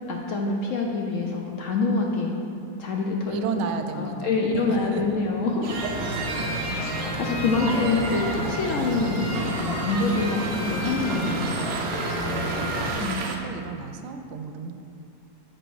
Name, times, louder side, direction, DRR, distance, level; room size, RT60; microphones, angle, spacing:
voice 1, 0.1-2.4 2.8-3.4 4.0-5.9 6.9-11.5 13.0-13.3, left 3 dB, 65° left, 0 dB, 0.8 m, -26 dB
voice 2, 3.3-5.0 6.0-6.8 12.0-14.7, right 5 dB, 90° right, 7 dB, 1.2 m, -34 dB
sound 1, 5.6-13.4, right 4 dB, 60° right, 0.8 m, -35 dB
sound 2, 5.7-12.9, equal, 5° right, 1.5 m, -30 dB
7.8 x 4.5 x 4.7 m, 2.5 s
omnidirectional pair, 1.8 m